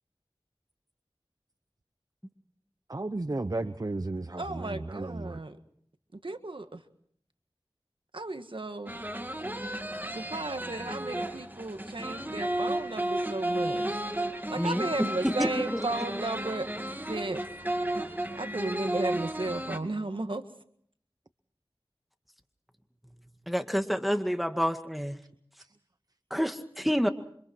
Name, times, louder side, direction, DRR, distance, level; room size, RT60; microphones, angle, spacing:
voice 1, 2.9-5.4, right 2 dB, 40° right, 11 dB, 0.9 m, -34 dB
voice 2, 4.4-5.6 6.2-6.8 8.1-8.9 10.1-14.0 14.5-16.7 17.1-17.4 18.4-20.5, right 2 dB, 65° right, 8 dB, 1.7 m, -34 dB
sound 1, 8.9-19.8, right 1 dB, 20° right, 2.8 m, -33 dB
voice 3, 14.5-15.8 23.5-25.2 26.3-27.1, equal, ahead, 6 dB, 2.0 m, -28 dB
28.5 x 25.5 x 4.6 m, 0.64 s
wide cardioid pair, 40°, 9 cm